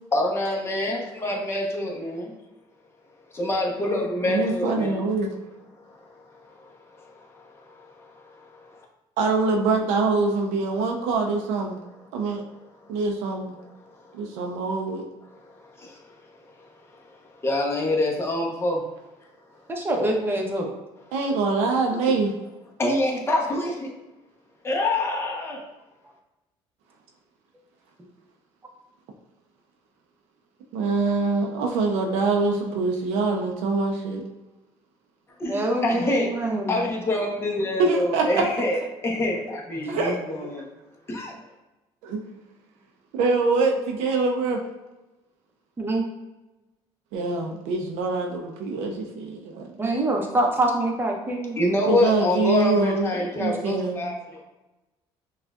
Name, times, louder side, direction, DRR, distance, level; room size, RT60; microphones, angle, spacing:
voice 1, 0.1-2.3 3.3-5.1 6.0-8.8 15.3-15.4 15.6-16.1 17.0-18.8 22.8-23.9 24.6-25.6 35.4-40.7 41.1-41.3 51.6-54.4, left 1 dB, 20° left, -1 dB, 0.9 m, -26 dB
voice 2, 4.3-5.3 9.2-11.8 12.1-12.4 12.9-13.5 14.1-15.0 21.1-22.3 30.7-34.2 37.8-38.4 39.9-40.2 40.4-40.5 42.0-42.2 43.1-44.6 47.1-50.0 51.8-53.1 53.4-54.0, right 3 dB, 85° right, 1 dB, 0.5 m, -24 dB
voice 3, 19.7-20.7 35.5-36.8 45.8-46.0 49.8-51.6, right 1 dB, 20° right, 1 dB, 0.8 m, -25 dB
6.0 x 2.4 x 2.4 m, 1.1 s
cardioid pair, 110°, 11 cm